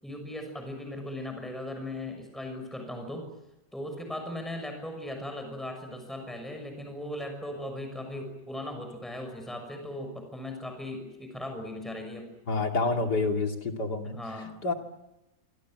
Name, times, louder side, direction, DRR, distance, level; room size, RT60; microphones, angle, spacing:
voice 1, 0.0-3.3 3.7-12.3 14.2-14.5, left 1 dB, ahead, 5 dB, 6.3 m, -38 dB
voice 2, 12.5-14.2 14.6-14.7, left 3 dB, 60° left, 3 dB, 3.4 m, -28 dB
26.5 x 25.0 x 7.9 m, 0.97 s
omnidirectional pair, 2.0 m